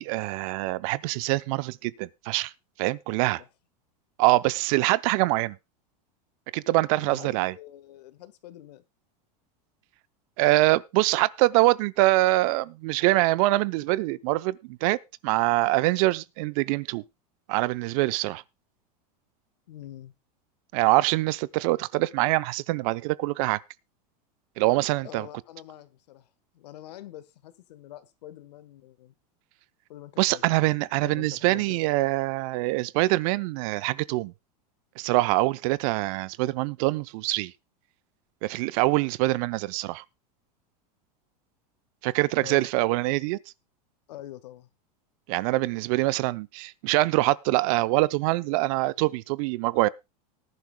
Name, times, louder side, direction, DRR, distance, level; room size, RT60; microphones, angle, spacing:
voice 1, 0.0-2.5 2.8-3.4 4.2-5.6 6.5-7.5 10.4-15.0 15.2-17.0 17.5-18.4 20.7-23.6 24.6-25.3 30.2-34.3 35.0-37.5 38.4-40.0 42.0-43.4 45.3-49.9, right 20 dB, 55° right, 0.6 m, -24 dB
voice 2, 7.0-8.8 19.7-20.2 25.0-29.1 29.9-30.4 30.8-31.8 42.4-42.7 44.1-44.7, left 13 dB, 80° left, 1.3 m, -45 dB
19.0 x 10.5 x 2.2 m
supercardioid pair, 130°, 21 cm